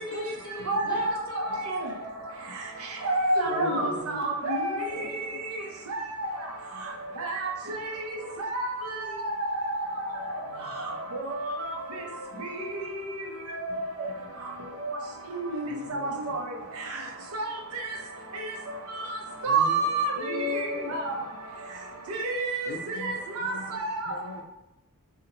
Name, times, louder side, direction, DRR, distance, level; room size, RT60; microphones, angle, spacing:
voice 1, 0.0-1.6 3.6-4.1 4.6-5.2, left 1 dB, 20° left, -5 dB, 0.7 m, -40 dB
voice 2, 0.7-1.1 1.7-1.8 3.0-4.8 7.2-7.5 8.5-8.7 9.0-9.1 9.5-9.8 11.1-11.3 11.6-11.7 13.5-14.0 15.5-15.6 15.9-16.0 17.3-17.5 19.4-21.1 22.1-22.7 23.0-24.1, right 2 dB, 75° right, 1 dB, 0.6 m, -28 dB
voice 3, 3.5-4.3 4.8-5.4 6.7-6.9 10.5-10.8 15.6-16.1 19.5-19.8 20.2-21.0 22.7-24.4, left 6 dB, 65° left, 6 dB, 0.3 m, -39 dB
2.5 x 2.1 x 2.8 m, 0.89 s
head